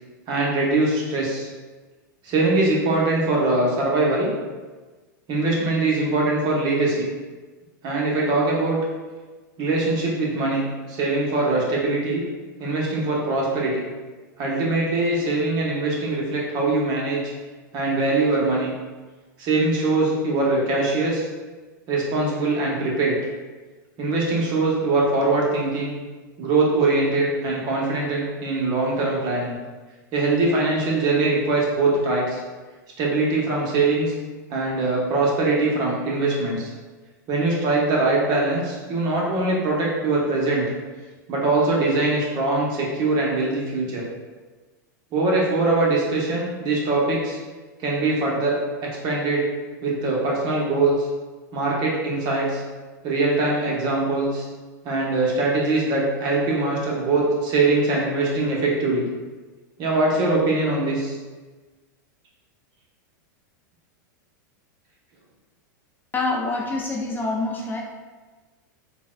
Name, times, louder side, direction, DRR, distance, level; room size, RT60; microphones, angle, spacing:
voice 1, 0.3-1.5 2.2-4.3 5.3-7.1 7.8-8.8 9.6-10.6 10.9-12.2 12.6-13.8 14.4-17.3 17.7-18.7 19.4-21.3 21.9-23.2 24.0-25.9 26.4-29.6 30.1-32.4 33.0-34.1 34.5-36.7 37.3-40.7 41.3-44.0 45.1-47.4 47.8-48.6 48.8-49.5 49.8-51.1 51.5-52.6 53.0-54.5 54.8-59.0 59.8-61.2, right 2 dB, 45° right, -3 dB, 0.9 m, -22 dB
voice 2, 66.1-67.8, left 3 dB, 20° left, -1 dB, 0.3 m, -26 dB
3.9 x 2.2 x 2.3 m, 1.3 s
hypercardioid pair, 115°, 10 cm